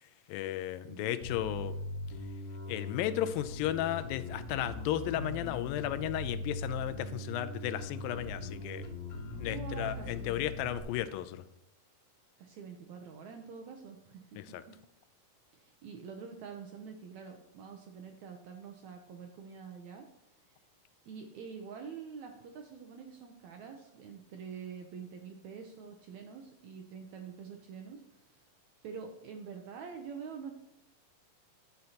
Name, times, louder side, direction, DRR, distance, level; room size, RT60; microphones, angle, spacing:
voice 1, 0.3-1.8 2.7-8.9 9.4-11.4 14.4-14.6, left 12 dB, 85° left, 13 dB, 2.3 m, -34 dB
Bass guitar, 1.2-10.8, left 2 dB, 35° left, 1.9 m, -40 dB
voice 2, 9.5-10.4 12.4-14.8 15.5-20.1 20.4-20.6 21.1-28.4 28.8-30.5, right 6 dB, 75° right, 3 dB, 1.7 m, -46 dB
11.0 x 7.8 x 2.9 m, 0.85 s
omnidirectional pair, 4.0 m